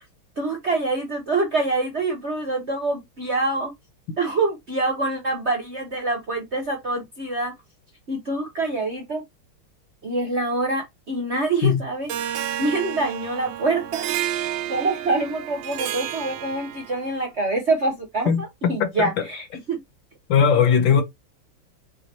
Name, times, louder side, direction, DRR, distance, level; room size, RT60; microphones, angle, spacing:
voice 1, 0.4-3.7 4.2-7.5 8.1-9.2 10.0-14.0 14.7-19.8, right 2 dB, 45° right, 0.9 m, -25 dB
Harp, 12.1-17.1, right 11 dB, 75° right, 1.2 m, -30 dB
voice 2, 18.3-19.2 20.3-21.0, left 7 dB, 65° left, 1.5 m, -19 dB
6.3 x 2.7 x 2.9 m
omnidirectional pair, 2.4 m